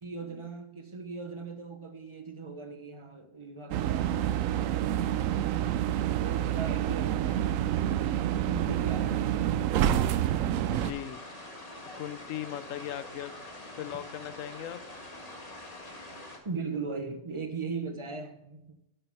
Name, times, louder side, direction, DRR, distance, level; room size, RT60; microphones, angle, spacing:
voice 1, 0.0-4.2 6.2-7.8 8.4-9.4 16.4-18.8, right 4 dB, 25° right, 0.8 m, -38 dB
sound 1, 3.7-10.9, right 11 dB, 90° right, 1.0 m, -28 dB
voice 2, 10.7-11.2 12.0-13.4 13.8-14.9, left 11 dB, 85° left, 1.0 m, -38 dB
sound 2, 10.7-16.4, left 1 dB, 30° left, 1.7 m, -45 dB
9.8 x 6.7 x 4.6 m
omnidirectional pair, 1.3 m